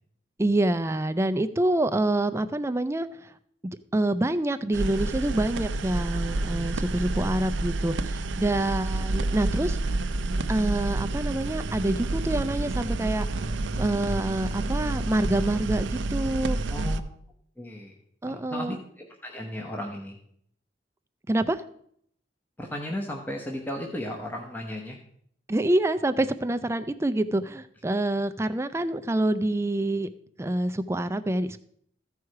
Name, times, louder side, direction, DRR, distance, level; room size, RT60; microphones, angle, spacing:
voice 1, 0.4-3.3 3.6-9.8 10.5-13.3 13.8-16.6 18.2-18.8 21.3-21.6 25.5-30.1 30.4-31.6, right 1 dB, 15° right, 10 dB, 0.4 m, -26 dB
sound 1, 4.7-17.0, right 2 dB, 80° right, 0.5 m, -29 dB
voice 2, 6.6-7.0 16.7-17.0 17.6-17.9 18.3-20.2 22.6-25.0, left 1 dB, 10° left, 0 dB, 0.9 m, -35 dB
14.5 x 4.8 x 4.7 m, 0.66 s
head